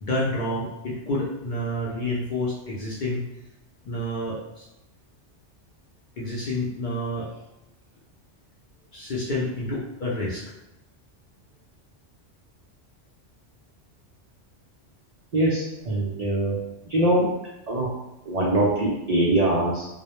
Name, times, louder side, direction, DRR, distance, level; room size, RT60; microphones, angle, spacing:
voice 1, 0.0-3.3 3.8-4.7 6.2-7.3 8.9-10.4, left 1 dB, 55° left, -5 dB, 0.5 m, -29 dB
voice 2, 15.3-16.6 16.9-17.3 17.7-17.9 18.3-19.9, right 1 dB, 70° right, -4 dB, 0.3 m, -22 dB
2.2 x 2.0 x 2.9 m, 0.93 s
omnidirectional pair, 1.2 m